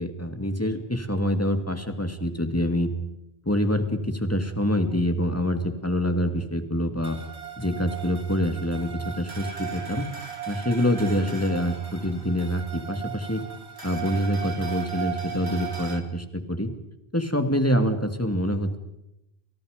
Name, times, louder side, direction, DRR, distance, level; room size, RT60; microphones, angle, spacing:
voice 1, 0.0-2.9 3.5-7.2 7.6-10.1 10.5-13.4 13.8-16.7 17.1-18.8, equal, 15° left, 7 dB, 2.4 m, -26 dB
sound 1, 7.0-16.0, right 8 dB, 80° right, 3.0 m, -37 dB
29.5 x 28.5 x 5.2 m, 0.88 s
omnidirectional pair, 1.0 m